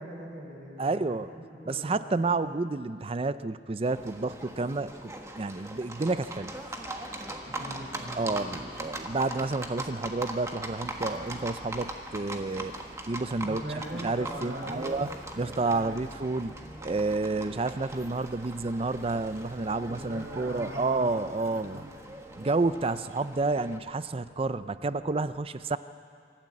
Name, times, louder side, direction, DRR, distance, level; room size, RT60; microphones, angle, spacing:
voice 1, 0.0-2.2 7.4-8.6 13.4-15.1 15.3-16.0 19.9-21.9, right 1 dB, 50° right, -10 dB, 7.5 m, -41 dB
voice 2, 0.8-1.3 1.7-6.5 8.1-12.7 13.0-13.6 14.0-15.1 15.4-21.8 22.4-25.8, right 3 dB, 30° right, 13 dB, 0.5 m, -30 dB
Livestock farm animals working animals, 3.9-23.8, right 1 dB, 15° right, 1.5 m, -40 dB
26.0 x 13.5 x 8.5 m, 2.3 s
head